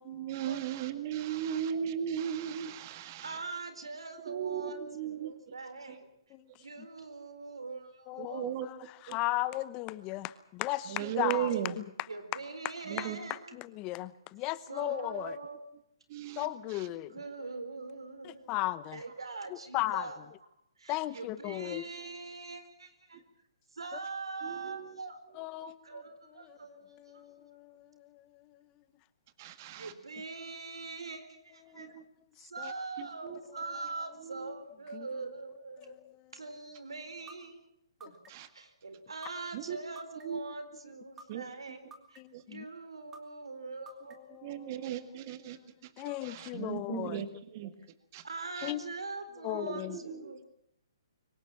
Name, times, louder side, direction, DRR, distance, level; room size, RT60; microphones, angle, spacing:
voice 1, 0.1-3.4 4.3-5.3 5.9-6.0 8.2-8.7 9.1-9.2 10.9-11.7 12.9-13.2 16.1-16.9 24.4-25.0 29.4-29.9 31.7-32.0 33.0-33.4 34.2-34.5 38.3-38.5 39.5-39.8 40.2-40.4 41.3-41.4 42.3-42.4 44.4-45.6 46.2-47.7 48.1-48.2 48.6-48.7 49.6-50.3, right 10 dB, 40° right, 11 dB, 1.9 m, -37 dB
voice 2, 1.3-1.6 3.2-6.1 6.5-8.4 11.2-11.7 12.1-13.6 14.7-15.6 17.1-18.5 18.9-20.3 20.8-23.2 23.7-27.2 29.7-31.9 32.4-36.0 36.3-37.6 38.0-38.1 38.5-42.2 42.4-44.3 46.0-46.5 48.2-50.4, right 3 dB, 90° right, 10 dB, 4.3 m, -43 dB
voice 3, 8.1-11.8 13.0-15.4 16.4-17.2 18.2-19.0 19.5-20.1 20.9-21.8 25.4-25.8 26.5-28.4 31.7-31.8 32.4-32.7 34.9-35.1 35.8-35.9 42.2-42.7 44.3-45.1 46.0-47.2 48.6-48.9 49.4-50.0, left 17 dB, 25° left, 17 dB, 0.9 m, -36 dB
sound 1, 37.3-37.4 38.0-38.5 39.2-39.3 39.9-40.5 41.2-41.3 41.9-42.4 43.1-43.2 43.9-44.4, right 3 dB, 15° right, 2.8 m, -49 dB
23.5 x 19.0 x 7.5 m, 0.73 s
hypercardioid pair, 145°, 3 cm